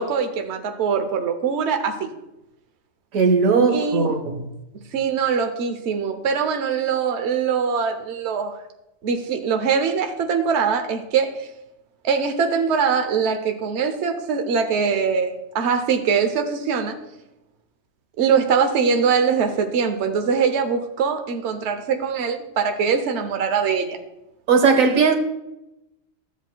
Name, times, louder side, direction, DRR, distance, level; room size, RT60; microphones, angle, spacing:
voice 1, 0.0-2.1 3.7-4.1 4.9-8.5 9.0-11.5 12.0-17.0 18.2-24.0, right 6 dB, 60° right, 1.1 m, -22 dB
voice 2, 3.1-4.4 24.5-25.1, right 5 dB, 90° right, 1.5 m, -17 dB
14.5 x 8.2 x 2.2 m
omnidirectional pair, 1.4 m